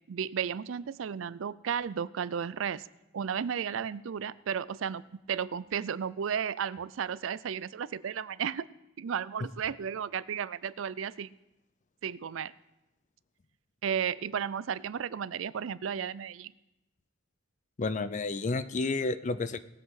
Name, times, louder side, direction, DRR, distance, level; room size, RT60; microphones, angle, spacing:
voice 1, 0.1-2.9 3.1-8.7 9.0-11.3 12.0-12.5 13.8-16.5, right 7 dB, 75° right, 18 dB, 0.4 m, -33 dB
voice 2, 17.8-19.6, left 3 dB, 40° left, 13 dB, 0.5 m, -31 dB
19.5 x 7.6 x 4.9 m, 0.94 s
head